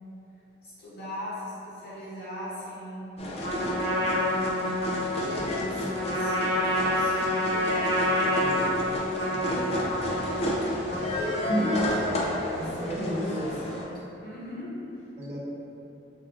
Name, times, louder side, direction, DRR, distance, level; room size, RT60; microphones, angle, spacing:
voice 1, 0.6-3.1 4.2-7.2 11.2-14.9, equal, 50° left, -9 dB, 1.0 m, -39 dB
sound 1, 3.2-13.8, left 1 dB, 30° left, 0.3 m, -31 dB
Trumpet, 3.4-12.1, equal, 90° left, 0.8 m, -28 dB
voice 2, 9.2-9.8 12.6-13.4 15.2-15.4, equal, 35° right, -8 dB, 0.7 m, -35 dB
3.4 x 2.3 x 3.4 m, 2.8 s
head